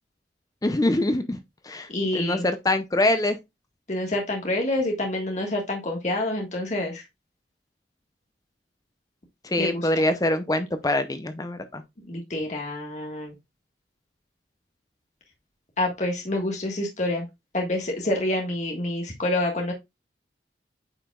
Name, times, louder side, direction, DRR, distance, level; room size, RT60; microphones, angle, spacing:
voice 1, 0.6-3.4 9.4-11.8, left 1 dB, 20° left, 0.6 m, -24 dB
voice 2, 1.9-2.4 3.9-7.0 9.6-9.9 12.1-13.3 15.8-17.3 17.5-19.7, left 1 dB, 40° left, 1.6 m, -27 dB
8.7 x 4.9 x 2.3 m
head